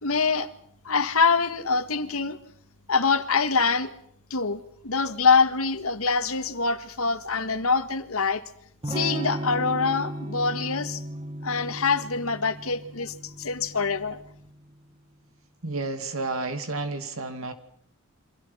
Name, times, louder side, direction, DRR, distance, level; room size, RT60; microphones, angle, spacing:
voice 1, 0.0-0.5 0.9-2.4 2.9-3.9 4.3-8.4 8.9-11.0 11.4-14.2, left 4 dB, 80° left, 1.8 m, -25 dB
Electric guitar / Strum, 8.8-14.5, right 1 dB, 25° right, 1.2 m, -36 dB
voice 2, 15.6-17.5, right 3 dB, 70° right, 2.6 m, -31 dB
29.0 x 25.0 x 5.7 m
head